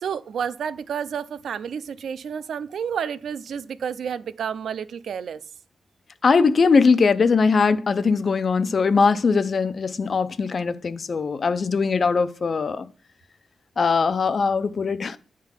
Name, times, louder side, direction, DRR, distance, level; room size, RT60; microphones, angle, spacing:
voice 1, 0.0-5.4, right 7 dB, 85° right, 0.4 m, -30 dB
voice 2, 6.2-12.9 13.8-15.2, left 5 dB, 45° left, 0.5 m, -20 dB
9.7 x 3.7 x 5.7 m
wide cardioid pair, 140°, 0 cm